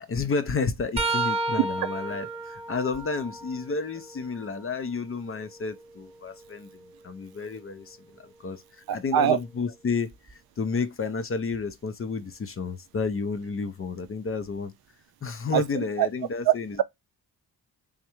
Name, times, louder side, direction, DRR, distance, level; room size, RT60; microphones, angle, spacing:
voice 1, 0.0-14.7 15.2-16.8, left 4 dB, 35° left, 0.6 m, -31 dB
sound 1, 1.0-4.7 5.3-7.2 10.1-10.3 11.5-11.7 13.0-13.1, right 2 dB, 15° right, 1.0 m, -34 dB
voice 2, 8.9-9.4 15.5-15.6 16.0-16.1 16.5-16.8, right 11 dB, 65° right, 0.5 m, -22 dB
3.6 x 3.1 x 2.9 m
cardioid pair, 65°, 41 cm